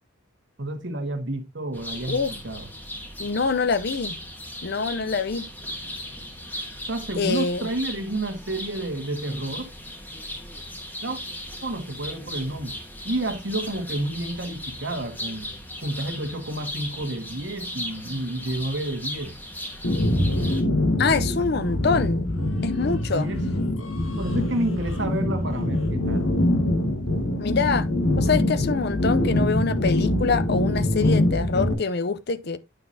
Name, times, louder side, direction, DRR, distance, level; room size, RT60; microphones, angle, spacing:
voice 1, 0.6-2.7 6.8-9.7 11.0-11.2 11.6-12.8 13.0-15.5 15.8-19.3 21.4-21.6 23.1-23.4 24.2-26.3, right 1 dB, 60° right, 1.5 m, -30 dB
sound 1, 1.7-20.6, left 1 dB, 10° left, 1.2 m, -37 dB
voice 2, 3.2-4.2 4.6-5.5 7.2-7.7 21.0-22.3 22.6-23.3 27.4-27.9 28.2-32.6, left 4 dB, 50° left, 0.6 m, -25 dB
sound 2, 19.8-31.7, left 1 dB, 75° left, 1.6 m, -24 dB
9.1 x 5.9 x 2.7 m
head